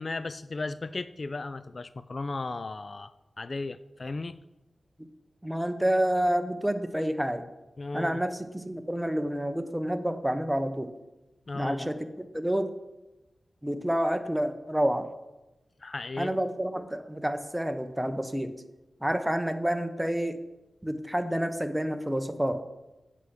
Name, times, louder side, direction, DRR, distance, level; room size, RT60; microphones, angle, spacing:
voice 1, 0.0-3.1 3.4-4.4 7.8-8.2 11.5-11.9 15.8-16.4, left 3 dB, 50° left, 14 dB, 0.3 m, -35 dB
voice 2, 5.4-7.4 7.9-10.9 11.5-12.7 13.6-15.1 16.2-18.5 19.0-20.4 20.8-22.6, equal, 10° right, 9 dB, 0.8 m, -29 dB
8.2 x 5.7 x 6.4 m, 1.0 s
cardioid pair, 65°, 0 cm